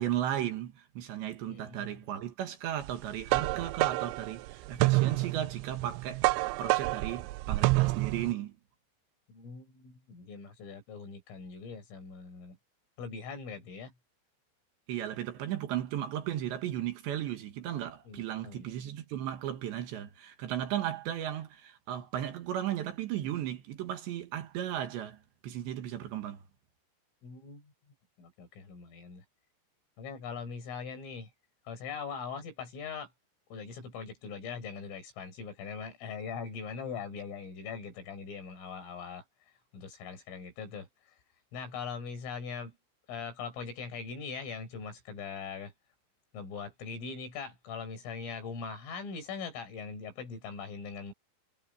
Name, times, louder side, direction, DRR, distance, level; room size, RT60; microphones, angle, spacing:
voice 1, 0.0-8.6 14.9-26.4, right 11 dB, 65° right, 3.6 m, -35 dB
voice 2, 1.5-2.0 9.3-12.6 13.0-13.9 18.1-18.7 27.2-27.7 28.2-29.2 30.0-31.3 31.7-33.1 33.5-39.2 39.7-40.9 41.5-42.7 43.1-45.7 46.3-51.1, left 5 dB, 75° left, 8.4 m, -41 dB
sound 1, 2.9-8.3, right 21 dB, 85° right, 2.6 m, -28 dB
omnidirectional pair, 5.8 m